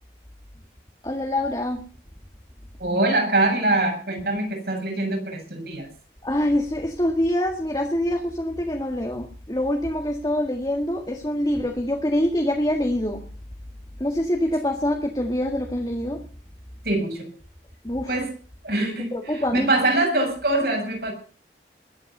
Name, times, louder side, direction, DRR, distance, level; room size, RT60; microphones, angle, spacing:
voice 1, 1.0-1.8 6.2-13.2 14.0-16.2 17.8-18.1 19.1-19.7, left 1 dB, 20° left, 3 dB, 1.8 m, -25 dB
voice 2, 2.8-5.9 16.8-17.3 18.1-18.3 18.6-21.1, right 2 dB, 65° right, 2 dB, 7.5 m, -24 dB
21.0 x 9.1 x 6.8 m, 0.41 s
head